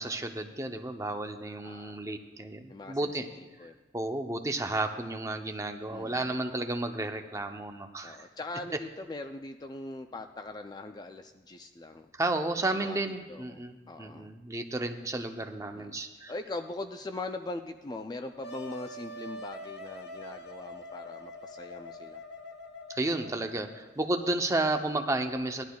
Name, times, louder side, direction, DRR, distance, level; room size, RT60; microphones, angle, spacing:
voice 1, 0.0-3.3 3.6-8.2 12.1-16.3 22.9-25.6, right 2 dB, 15° right, 5 dB, 0.6 m, -32 dB
voice 2, 1.6-2.0 2.7-3.7 5.9-6.4 8.0-12.1 12.7-13.0 13.3-14.3 15.7-16.0 16.3-22.2, left 2 dB, 20° left, 7 dB, 0.3 m, -41 dB
Wind instrument woodwind instrument, 18.4-23.9, left 1 dB, 65° left, 1.0 m, -44 dB
17.5 x 11.5 x 2.3 m, 1.2 s
head